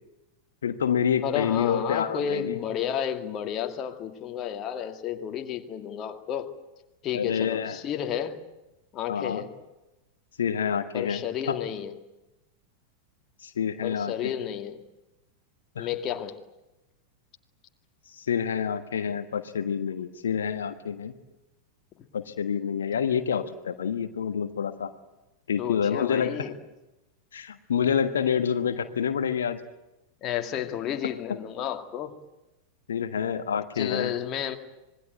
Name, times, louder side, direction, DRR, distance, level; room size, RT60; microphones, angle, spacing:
voice 1, 0.6-2.6 7.1-7.8 9.1-9.4 10.4-11.2 11.5-11.6 13.4-14.3 15.7-15.9 18.1-21.1 22.1-24.9 25.5-26.5 27.3-29.6 32.9-34.1, left 7 dB, 65° left, 10 dB, 1.4 m, -27 dB
voice 2, 1.2-6.5 7.0-8.4 8.9-9.5 10.9-11.9 13.8-14.8 15.8-16.4 22.0-22.1 25.6-26.5 30.2-32.1 33.8-34.6, left 9 dB, 35° left, 6 dB, 2.3 m, -31 dB
26.5 x 21.5 x 9.2 m, 0.97 s
figure-of-eight pair, 90°, 0 cm